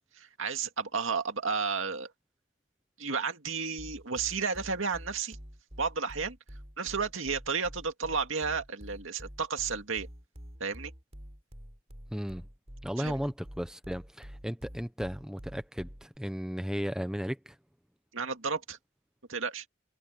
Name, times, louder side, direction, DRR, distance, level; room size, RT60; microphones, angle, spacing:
voice 1, 0.2-2.1 3.0-5.4 5.8-6.4 6.8-10.1 10.6-10.9 13.0-13.2 18.1-18.8 19.3-19.6, right 5 dB, 75° right, 2.2 m, -32 dB
sound 1, 3.8-16.2, equal, 30° right, 4.3 m, -47 dB
voice 2, 12.1-12.5 12.8-17.6, equal, 5° right, 0.9 m, -35 dB
head